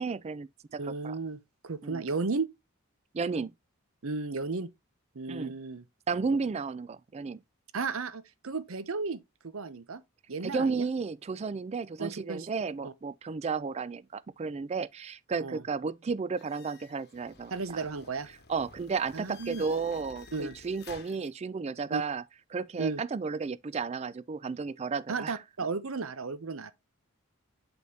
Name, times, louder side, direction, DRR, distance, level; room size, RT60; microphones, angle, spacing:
voice 1, 0.0-1.2 1.8-2.0 3.1-3.5 5.3-5.5 6.1-7.4 10.4-17.8 18.5-22.2 22.5-25.4, right 4 dB, 30° right, 0.3 m, -33 dB
voice 2, 0.8-2.5 4.0-4.7 5.1-5.8 7.7-10.0 10.3-10.9 12.0-12.5 12.8-12.9 15.4-15.6 17.5-18.3 19.1-19.6 20.3-20.5 21.9-22.0 22.8-23.0 25.1-26.7, right 4 dB, 70° right, 0.7 m, -34 dB
sound 1, 16.4-21.3, left 4 dB, 50° left, 1.1 m, -52 dB
7.9 x 5.2 x 2.8 m
head